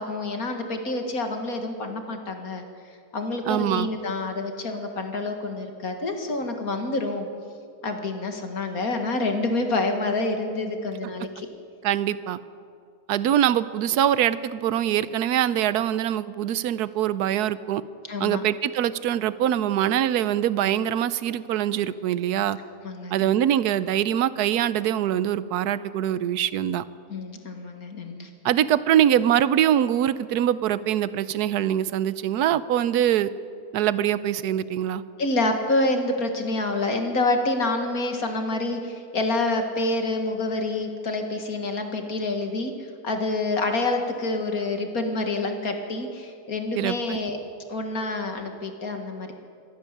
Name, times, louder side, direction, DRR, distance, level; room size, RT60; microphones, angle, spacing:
voice 1, 0.0-2.6 3.1-7.3 7.8-11.5 18.1-18.4 22.8-23.3 27.1-28.3 35.2-42.7 43.0-47.4 47.7-49.3, left 2 dB, 60° left, 5 dB, 2.4 m, -27 dB
voice 2, 3.4-3.9 11.8-12.4 13.1-17.8 18.2-22.6 23.1-26.8 28.4-33.3 33.7-35.0 46.8-47.2, right 11 dB, 75° right, 16 dB, 1.2 m, -23 dB
25.0 x 12.0 x 9.8 m, 2.4 s
omnidirectional pair, 1.7 m